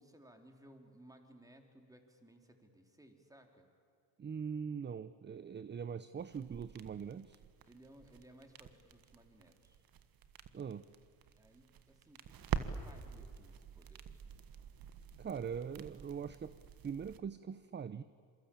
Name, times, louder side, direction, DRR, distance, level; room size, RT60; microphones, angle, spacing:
voice 1, 0.0-3.7 7.7-9.8 11.4-14.0, right 1 dB, 10° right, 4 dB, 3.8 m, -61 dB
voice 2, 4.2-7.4 10.5-10.9 15.2-16.6 16.8-18.0, right 7 dB, 25° right, 14 dB, 0.7 m, -42 dB
sound 1, 6.2-17.2, right 8 dB, 55° right, 1.6 m, -47 dB
26.5 x 23.5 x 8.8 m, 2.3 s
cardioid pair, 90°, 43 cm